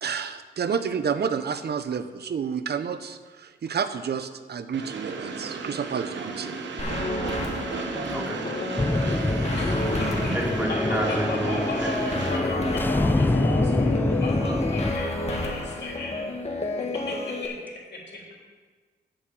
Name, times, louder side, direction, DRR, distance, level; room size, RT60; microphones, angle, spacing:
voice 1, 0.0-6.5, right 6 dB, 60° right, 11 dB, 0.8 m, -30 dB
Train, 4.7-12.4, right 4 dB, 85° right, 1.1 m, -34 dB
sound 1, 6.8-17.5, left 2 dB, 35° left, 1.9 m, -31 dB
voice 2, 8.1-8.4 10.3-11.9 15.4-15.6, right 1 dB, 10° right, -2 dB, 3.0 m, -29 dB
sound 2, 8.8-14.9, left 2 dB, 10° left, 0.3 m, -26 dB
voice 3, 9.6-10.4 10.7-16.2 16.9-18.4, left 2 dB, 65° left, -2 dB, 3.3 m, -35 dB
9.0 x 6.5 x 7.5 m, 1.4 s
cardioid pair, 65°, 18 cm